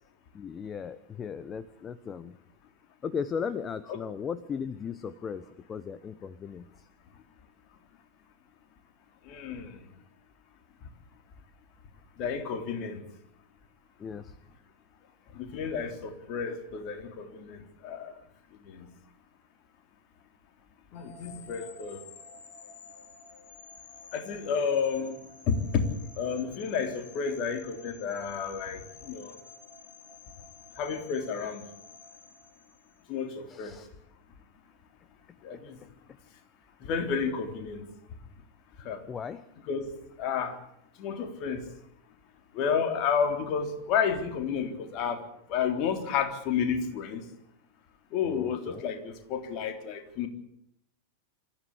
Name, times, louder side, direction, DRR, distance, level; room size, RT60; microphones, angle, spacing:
voice 1, 0.3-2.4 3.0-6.9 14.0-14.3 33.5-33.9 35.5-35.6 39.1-39.5 48.2-48.9, left 6 dB, 25° left, 15 dB, 1.0 m, -37 dB
voice 2, 9.3-9.8 12.2-13.0 15.3-18.1 18.6-18.9 20.9-22.0 24.1-25.9 26.2-29.4 30.8-31.6 33.1-33.8 35.4-35.8 36.8-37.9 38.8-39.0 39.7-39.9 40.2-40.6 41.0-41.7 42.5-45.2 45.5-47.2 48.1-50.3, left 6 dB, 40° left, 5 dB, 3.7 m, -31 dB
sound 1, 20.9-33.1, left 5 dB, 55° left, 3.9 m, -51 dB
26.5 x 15.0 x 8.5 m, 0.76 s
figure-of-eight pair, 90°, 0 cm